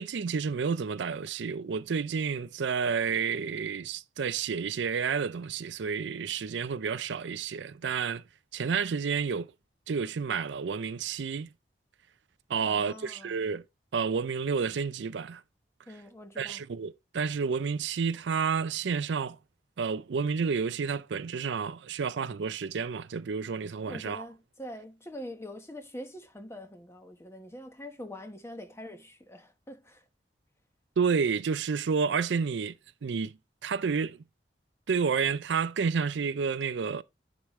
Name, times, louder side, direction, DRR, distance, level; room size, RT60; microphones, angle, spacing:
voice 1, 0.0-8.2 8.5-9.5 9.9-11.5 12.5-13.6 13.9-15.4 16.4-19.4 19.8-24.3 31.0-32.7 33.0-34.2 34.9-37.0, right 5 dB, 80° right, 0.5 m, -30 dB
voice 2, 12.6-13.4 15.9-16.6 23.9-30.0, left 1 dB, 15° left, 1.2 m, -44 dB
10.5 x 5.0 x 3.1 m
head